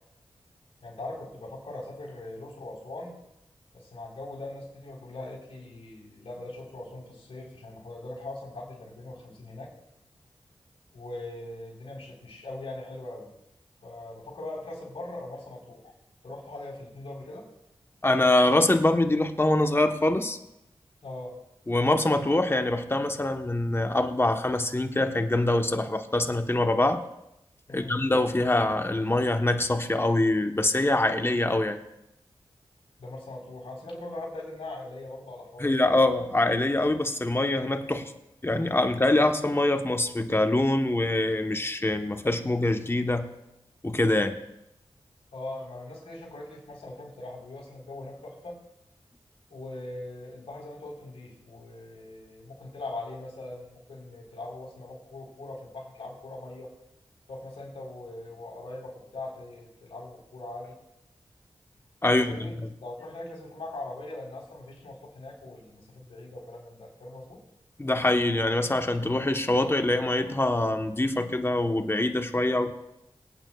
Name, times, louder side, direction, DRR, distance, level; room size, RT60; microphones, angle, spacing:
voice 1, 0.8-3.2 3.7-9.7 10.9-13.3 13.8-15.9 16.2-17.5 21.0-21.4 27.7-28.0 33.0-35.9 39.1-39.2 45.3-48.6 49.5-56.7 57.3-60.8 62.1-67.4, left 2 dB, 75° left, -3 dB, 4.1 m, -41 dB
voice 2, 18.0-20.4 21.7-27.0 27.7-31.8 35.6-38.1 38.4-43.4 43.8-44.4 62.0-62.4 67.8-72.7, left 2 dB, 25° left, 6 dB, 1.1 m, -24 dB
24.5 x 9.0 x 2.4 m, 0.86 s
cardioid pair, 50°, 10 cm